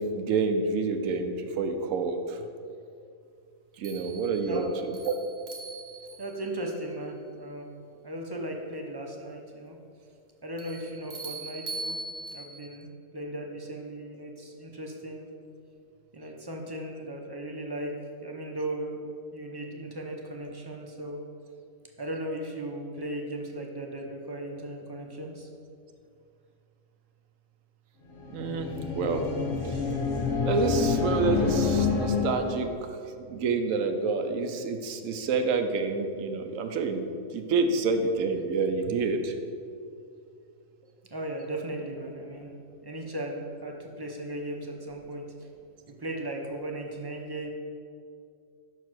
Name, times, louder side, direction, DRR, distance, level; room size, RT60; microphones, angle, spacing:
voice 1, 0.0-2.4 3.8-4.6 5.0-5.1 28.3-29.2 29.6-29.8 30.5-32.7 33.3-39.3, right 4 dB, 85° right, 6 dB, 1.0 m, -28 dB
sound 1, 3.8-6.6 10.6-12.8, right 3 dB, 55° right, 1.1 m, -40 dB
voice 2, 6.2-7.7 8.0-9.8 10.4-12.0 12.3-12.9 13.1-15.3 16.1-17.9 18.2-21.2 22.0-25.5 41.1-42.5 42.8-45.5 45.9-47.5, right 1 dB, 25° right, 1 dB, 0.5 m, -37 dB
sound 2, 28.1-32.8, left 4 dB, 75° left, 1.2 m, -28 dB
5.9 x 4.7 x 6.0 m, 2.4 s
omnidirectional pair, 1.3 m